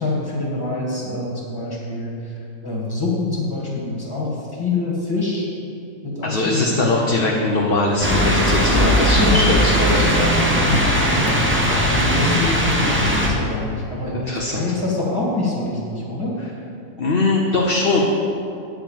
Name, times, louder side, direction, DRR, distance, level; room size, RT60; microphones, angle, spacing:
voice 1, 0.0-2.1 2.6-5.5 6.0-7.1 9.2-9.5 10.6-16.4, left 2 dB, 15° left, -5 dB, 1.9 m, -25 dB
voice 2, 6.2-10.4 11.4-11.9 14.1-14.6 17.0-18.0, left 2 dB, 50° left, -1 dB, 0.9 m, -21 dB
sound 1, 8.0-13.3, equal, 10° right, 0.9 m, -18 dB
9.3 x 4.8 x 7.3 m, 2.6 s
omnidirectional pair, 1.4 m